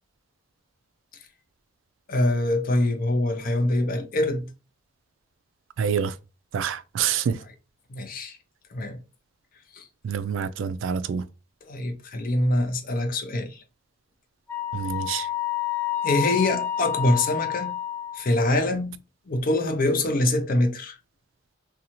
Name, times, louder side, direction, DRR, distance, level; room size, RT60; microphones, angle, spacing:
voice 1, 2.1-4.5 7.9-8.4 8.7-9.0 9.7-9.8 11.6-13.6 15.1-15.3 16.0-17.8 18.1-19.0 19.3-21.0, left 1 dB, 45° left, 0.5 m, -24 dB
voice 2, 5.8-6.1 6.5-7.4 10.0-11.2 14.7-15.3, right 7 dB, 75° right, 0.3 m, -27 dB
Wind instrument woodwind instrument, 14.5-18.3, left 11 dB, 10° left, 0.7 m, -29 dB
2.6 x 2.3 x 2.9 m
head